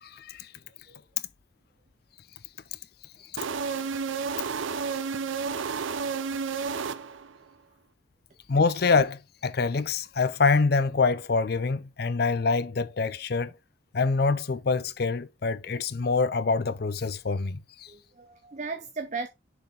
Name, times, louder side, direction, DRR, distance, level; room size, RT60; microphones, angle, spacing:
voice 1, 0.0-0.5 8.5-13.5 13.9-17.9, left 4 dB, 55° left, 0.5 m, -25 dB
Mike Gabber Intro, 3.4-7.4, right 5 dB, 85° right, 0.6 m, -31 dB
voice 2, 17.9-19.3, right 4 dB, 40° right, 0.6 m, -38 dB
6.7 x 4.2 x 3.8 m
head